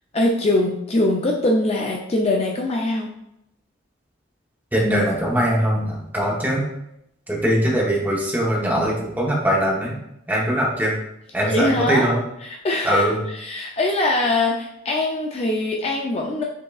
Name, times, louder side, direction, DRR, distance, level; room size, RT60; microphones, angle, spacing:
voice 1, 0.1-3.1 11.4-12.1 12.4-16.4, left 2 dB, 30° left, -1 dB, 0.4 m, -22 dB
voice 2, 4.7-6.7 7.3-9.9 10.3-10.9 11.3-12.2 12.9-13.1, equal, 10° right, -3 dB, 0.8 m, -21 dB
5.4 x 3.6 x 2.3 m, 0.80 s
head